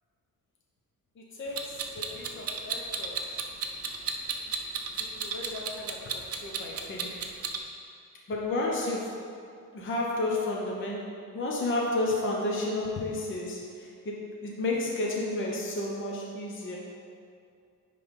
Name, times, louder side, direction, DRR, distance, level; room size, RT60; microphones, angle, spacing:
voice 1, 1.2-3.2 4.9-7.2 8.3-9.1 9.7-16.8, left 2 dB, 35° left, -3 dB, 0.9 m, -32 dB
Clock, 1.6-7.6, right 6 dB, 45° right, 0.6 m, -33 dB
9.5 x 3.4 x 5.2 m, 2.4 s
cardioid pair, 175°, 35 cm